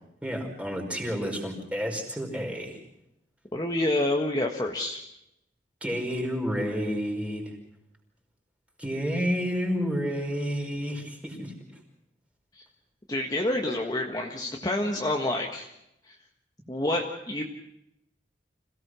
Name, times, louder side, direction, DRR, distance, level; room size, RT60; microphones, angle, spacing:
voice 1, 0.2-2.8 5.8-7.5 8.8-11.5, equal, 10° right, 1 dB, 5.0 m, -30 dB
voice 2, 3.5-5.0 12.6-12.7 13.1-15.7 16.1-16.2 16.7-17.4, left 1 dB, 25° left, 1 dB, 1.6 m, -28 dB
27.0 x 17.5 x 6.3 m, 0.82 s
head